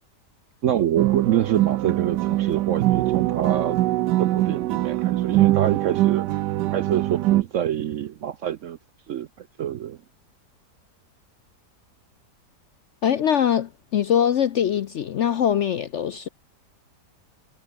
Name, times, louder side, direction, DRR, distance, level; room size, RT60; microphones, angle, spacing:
voice 1, 0.6-3.8 4.2-6.3 6.7-8.8 9.1-9.3 9.6-10.0, right 10 dB, 65° right, 0.8 m, -26 dB
sound 1, 1.0-7.4, right 16 dB, 90° right, 1.2 m, -22 dB
voice 2, 13.0-16.3, left 9 dB, 60° left, 0.7 m, -22 dB
omnidirectional pair, 1.8 m